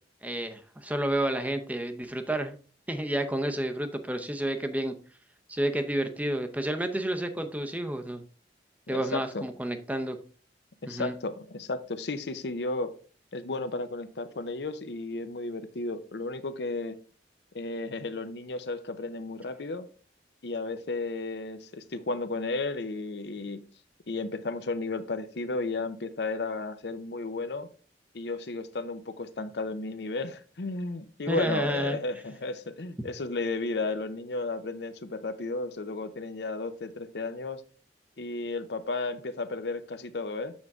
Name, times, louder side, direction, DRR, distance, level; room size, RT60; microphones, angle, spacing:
voice 1, 0.2-2.5 2.9-4.9 5.5-8.2 8.9-10.2 10.8-11.1 31.3-32.0, right 1 dB, 10° right, 7 dB, 0.6 m, -30 dB
voice 2, 8.9-9.4 10.8-12.9 13.3-17.0 17.5-19.9 20.4-23.6 24.1-27.7 28.1-37.6 38.2-40.5, left 3 dB, 70° left, 11 dB, 0.7 m, -33 dB
7.2 x 6.5 x 3.6 m, 0.39 s
head